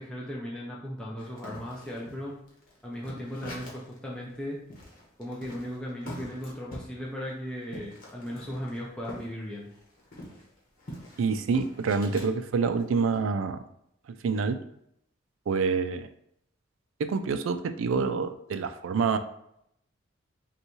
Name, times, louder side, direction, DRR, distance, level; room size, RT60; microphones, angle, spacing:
voice 1, 0.0-2.3 2.8-4.6 5.2-9.7, equal, 5° left, -4 dB, 0.5 m, -37 dB
sound 1, 1.2-4.0 4.3-4.4 4.7-9.3 9.6-12.3 12.8-13.2, equal, 45° left, 1.1 m, -45 dB
voice 2, 11.2-13.6 14.2-14.6 15.5-16.1 17.0-19.2, right 5 dB, 75° right, 10 dB, 0.4 m, -27 dB
5.3 x 2.3 x 3.0 m, 0.75 s
head